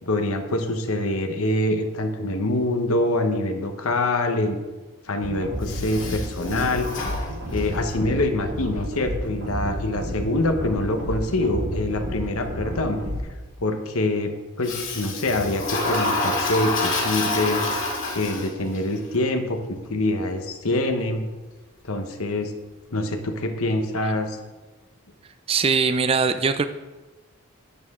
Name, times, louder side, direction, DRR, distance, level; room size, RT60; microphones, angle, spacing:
voice 1, 0.0-4.6 5.0-6.9 7.5-13.0 13.6-17.6 18.1-21.3 21.8-22.5 22.9-24.4, left 2 dB, 75° left, 5 dB, 1.1 m, -25 dB
sound 1, 5.2-13.2, equal, 75° right, 3.2 m, -31 dB
Toilet flush, 5.6-7.9 14.6-18.8, left 2 dB, 55° left, 2.3 m, -27 dB
voice 2, 25.5-26.6, right 5 dB, 25° right, 11 dB, 0.3 m, -21 dB
10.5 x 9.0 x 3.7 m, 1.2 s
head